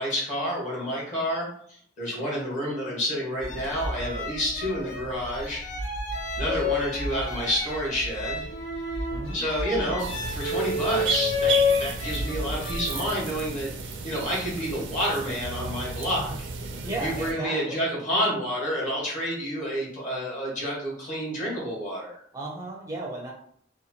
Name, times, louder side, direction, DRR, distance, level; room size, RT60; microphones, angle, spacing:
voice 1, 0.0-5.6 6.4-8.5 9.3-16.5 17.0-22.2, equal, 40° left, -5 dB, 1.1 m, -29 dB
sound 1, 3.4-13.1, left 3 dB, 80° left, 0.6 m, -30 dB
voice 2, 9.1-9.4 16.2-16.3 16.7-17.9 22.3-23.3, right 2 dB, 15° right, -2 dB, 0.4 m, -35 dB
sound 2, 10.0-17.3, right 4 dB, 80° right, 0.4 m, -34 dB
2.9 x 2.2 x 2.6 m, 0.63 s
head